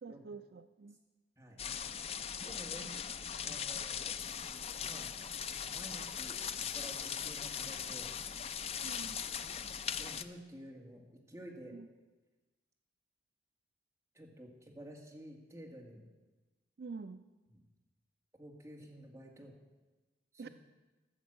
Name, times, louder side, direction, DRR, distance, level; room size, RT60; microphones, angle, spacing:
voice 1, 0.0-1.0 8.8-9.3 11.7-11.9 16.8-17.2 20.4-20.5, right 4 dB, 55° right, 10 dB, 0.4 m, -47 dB
sound 1, 1.6-10.2, left 7 dB, 35° left, 0.4 m, -40 dB
voice 2, 2.5-2.9 3.4-4.0 4.8-5.1 5.7-8.1 10.0-11.7 14.1-16.0 17.5-17.6 18.4-19.5 20.3-20.5, right 1 dB, 15° right, -1 dB, 1.9 m, -51 dB
14.0 x 7.2 x 7.6 m, 1.2 s
head